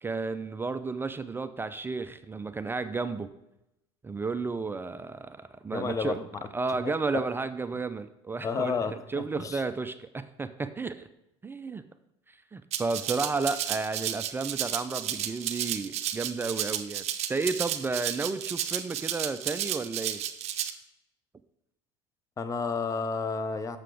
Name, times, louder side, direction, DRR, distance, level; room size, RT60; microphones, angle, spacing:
voice 1, 0.0-3.3 4.0-6.2 6.5-11.1 11.4-11.8 12.5-17.0 17.3-20.2, right 4 dB, 15° right, 11 dB, 0.4 m, -32 dB
voice 2, 5.7-6.2 6.8-6.9 8.4-9.6 22.4-23.8, left 4 dB, 20° left, 11 dB, 0.7 m, -31 dB
Rattle (instrument), 12.7-20.7, right 11 dB, 45° right, 0.7 m, -32 dB
6.8 x 5.8 x 4.8 m, 0.87 s
supercardioid pair, 95°, 15 cm